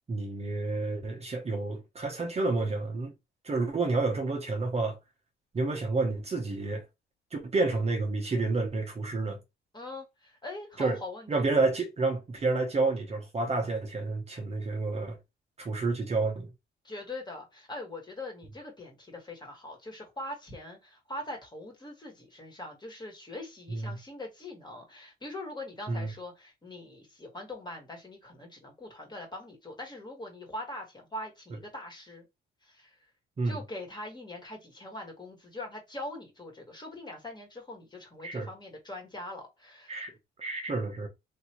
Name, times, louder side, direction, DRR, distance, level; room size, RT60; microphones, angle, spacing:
voice 1, 0.1-3.1 3.4-5.0 5.5-6.8 7.3-9.4 10.8-11.0 11.3-15.2 15.6-16.5 23.7-24.0 25.9-26.1 33.4-33.6 38.2-38.5 39.9-40.1 40.4-41.1, right 3 dB, 30° right, 0.9 m, -29 dB
voice 2, 9.7-11.5 16.8-32.2 32.6-33.0 33.4-40.0, left 1 dB, 20° left, 1.6 m, -42 dB
3.2 x 2.7 x 2.9 m
cardioid pair, 90°, 20 cm